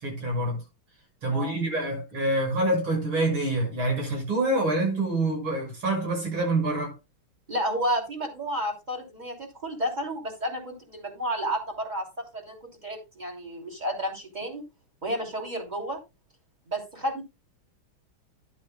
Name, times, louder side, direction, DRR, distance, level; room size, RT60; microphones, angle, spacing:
voice 1, 0.0-0.6 1.2-6.9, right 2 dB, 75° right, 7.4 m, -26 dB
voice 2, 7.5-12.6 12.8-14.6 15.0-16.0 16.7-17.2, equal, 20° right, 3.1 m, -31 dB
11.5 x 11.5 x 2.2 m
omnidirectional pair, 2.3 m